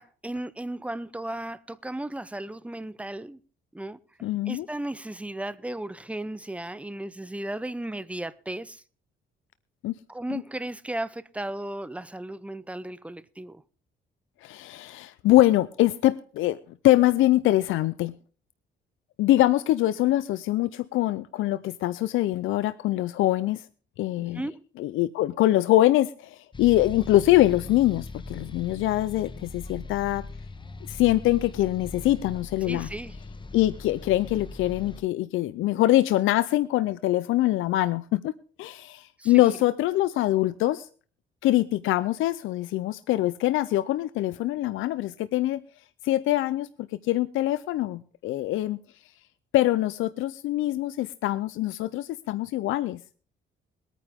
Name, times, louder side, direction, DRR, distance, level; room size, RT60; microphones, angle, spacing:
voice 1, 0.0-3.4 3.7-8.8 10.1-13.6 24.2-24.6 32.6-33.2 39.2-39.4, right 1 dB, 5° right, 0.7 m, -35 dB
voice 2, 4.2-4.7 9.8-9.9 10.3-10.4 14.4-16.6 16.8-18.1 19.2-23.6 24.0-24.4 24.8-30.2 30.9-32.9 33.5-38.3 38.6-40.9 41.4-45.6 46.0-46.7 47.0-48.8 49.5-53.0, left 15 dB, 85° left, 0.6 m, -24 dB
sound 1, 26.5-35.0, left 2 dB, 25° left, 1.2 m, -40 dB
21.5 x 9.2 x 3.6 m
cardioid pair, 90°, 20 cm